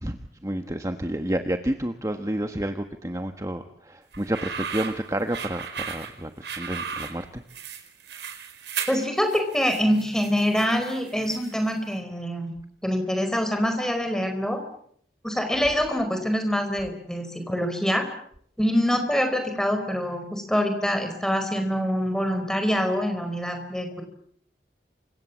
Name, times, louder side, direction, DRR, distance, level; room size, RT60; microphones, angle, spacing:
voice 1, 0.0-7.4, right 1 dB, 20° right, 7 dB, 1.4 m, -30 dB
sound 1, 4.1-11.7, right 6 dB, 85° right, 4.8 m, -36 dB
voice 2, 8.9-12.5 12.8-14.6 15.2-18.1 18.6-24.0, equal, 5° left, 6 dB, 4.9 m, -25 dB
29.0 x 25.0 x 7.5 m, 0.67 s
head